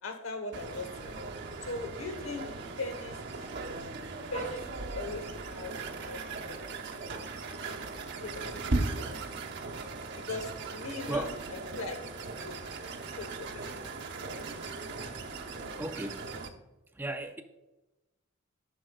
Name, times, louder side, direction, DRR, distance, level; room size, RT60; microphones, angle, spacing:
voice 1, 0.0-1.2 1.7-3.3 4.3-6.8 7.1-7.4 8.0-8.6 10.1-11.3 11.7-12.6 13.2-13.9 14.3-14.5, left 2 dB, 70° left, 1.1 m, -40 dB
sound 1, 0.5-16.5, right 3 dB, 55° right, 0.9 m, -38 dB
voice 2, 15.8-16.3 16.9-17.4, right 1 dB, 10° right, 0.4 m, -35 dB
11.0 x 6.1 x 2.3 m
head